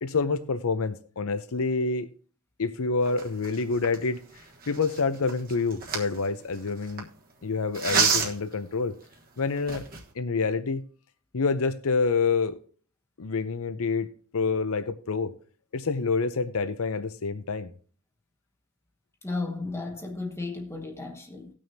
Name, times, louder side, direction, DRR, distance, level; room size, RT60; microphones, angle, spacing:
voice 1, 0.0-2.1 2.6-4.2 4.7-7.1 7.4-8.9 9.4-9.8 10.2-10.8 11.3-12.6 13.2-14.1 14.3-15.3 15.7-17.7, left 4 dB, 65° left, 0.7 m, -27 dB
sound 1, 3.1-7.0 7.7-8.5 9.1-9.2 9.6-10.1, right 5 dB, 40° right, 1.4 m, -29 dB
voice 2, 19.2-21.5, left 3 dB, 10° left, 1.0 m, -34 dB
18.5 x 6.3 x 2.8 m
head